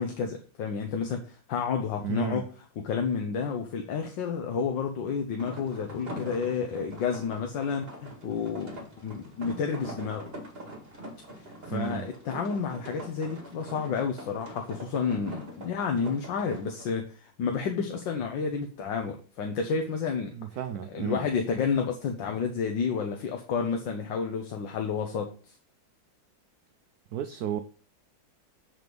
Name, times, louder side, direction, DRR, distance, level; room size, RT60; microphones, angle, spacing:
voice 1, 0.0-2.5 2.8-10.3 11.7-20.3 20.9-25.3, left 6 dB, 75° left, 1.6 m, -30 dB
voice 2, 2.0-2.4 11.7-12.1 20.3-21.2 27.1-27.6, right 10 dB, 70° right, 0.9 m, -33 dB
sound 1, 5.4-16.8, equal, 35° right, 1.9 m, -43 dB
7.8 x 4.8 x 5.3 m
omnidirectional pair, 2.0 m